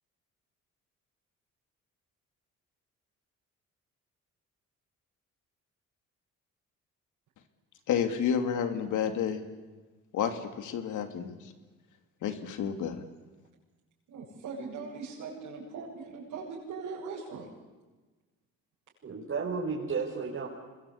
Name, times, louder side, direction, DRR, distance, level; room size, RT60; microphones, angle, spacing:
voice 1, 7.9-9.4 10.1-11.5 12.2-13.0, left 8 dB, 80° left, 7 dB, 2.8 m, -30 dB
voice 2, 14.1-17.5, right 4 dB, 75° right, -5 dB, 7.4 m, -40 dB
voice 3, 19.0-20.5, right 5 dB, 45° right, -3 dB, 5.4 m, -33 dB
27.0 x 21.5 x 8.6 m, 1.2 s
cardioid pair, 90°, 30 cm